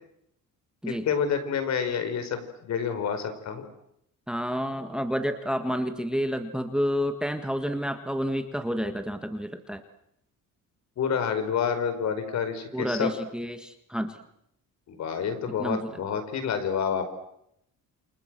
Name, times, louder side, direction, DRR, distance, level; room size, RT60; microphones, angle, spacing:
voice 1, 0.9-3.7 11.0-13.1 14.9-17.1, left 7 dB, 55° left, 8 dB, 4.9 m, -28 dB
voice 2, 4.3-9.8 12.7-14.2 15.6-16.0, equal, 5° right, 7 dB, 1.6 m, -29 dB
29.0 x 26.5 x 7.7 m, 0.77 s
cardioid pair, 155°, 32 cm